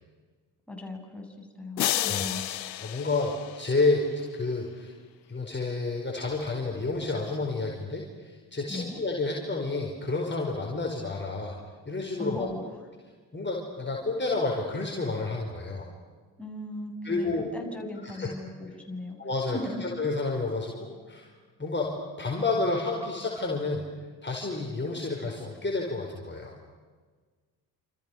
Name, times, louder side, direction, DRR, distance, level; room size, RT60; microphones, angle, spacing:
voice 1, 0.7-2.5 8.6-9.0 12.2-12.7 16.4-19.2 19.5-19.8, left 1 dB, ahead, 0 dB, 7.7 m, -38 dB
sound 1, 1.8-4.1, left 13 dB, 85° left, 1.0 m, -31 dB
voice 2, 2.8-4.9 5.3-11.6 11.9-12.5 13.3-15.9 17.0-17.4 18.0-18.3 19.2-21.3 21.6-23.9 24.2-26.5, left 3 dB, 20° left, -1 dB, 5.0 m, -30 dB
28.5 x 28.5 x 6.6 m, 1.5 s
figure-of-eight pair, 45°, 49 cm